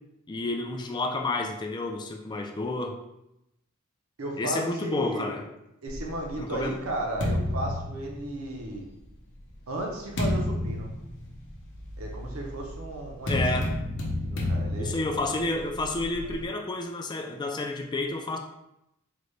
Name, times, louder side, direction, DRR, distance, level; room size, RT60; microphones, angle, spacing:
voice 1, 0.3-3.0 4.4-5.5 6.4-6.8 13.3-13.7 14.8-18.4, left 2 dB, 20° left, 3 dB, 0.3 m, -30 dB
voice 2, 4.2-5.4 5.8-8.8 9.7-10.9 12.0-13.3 14.2-14.9, right 1 dB, 80° right, 0 dB, 0.7 m, -34 dB
sound 1, 5.9-8.7 9.4-16.5, left 1 dB, 60° left, 0.7 m, -32 dB
3.9 x 2.1 x 3.1 m, 0.86 s
head